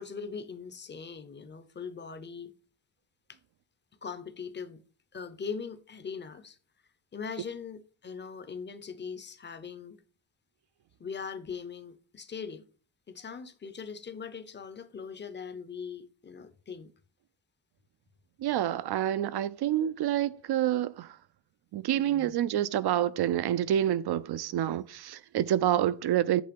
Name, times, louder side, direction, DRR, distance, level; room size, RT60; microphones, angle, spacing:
voice 1, 0.0-2.5 3.3-3.4 4.0-4.8 5.1-6.6 7.1-10.0 11.0-12.7 13.1-16.9 21.9-22.4, left 6 dB, 25° left, 0.6 m, -41 dB
voice 2, 18.4-21.1 21.7-26.4, right 11 dB, 60° right, 0.5 m, -27 dB
8.6 x 3.3 x 5.1 m
wide cardioid pair, 150°, 44 cm